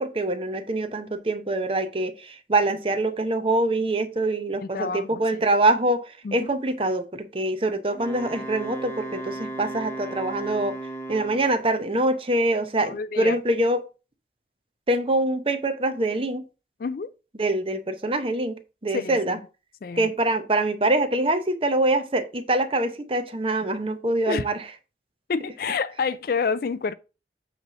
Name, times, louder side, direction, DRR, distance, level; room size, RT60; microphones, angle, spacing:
voice 1, 0.0-10.8 11.1-13.8 14.9-16.4 17.4-18.5 18.8-19.4 20.0-24.6, right 2 dB, 30° right, 0.8 m, -24 dB
voice 2, 4.5-5.4 6.2-6.5 12.8-13.4 16.8-17.1 18.9-19.5 19.8-20.1 24.3-24.5 25.3-26.9, left 5 dB, 50° left, 0.4 m, -29 dB
Wind instrument woodwind instrument, 7.9-11.7, right 2 dB, 15° left, 1.2 m, -35 dB
8.0 x 3.2 x 6.1 m
head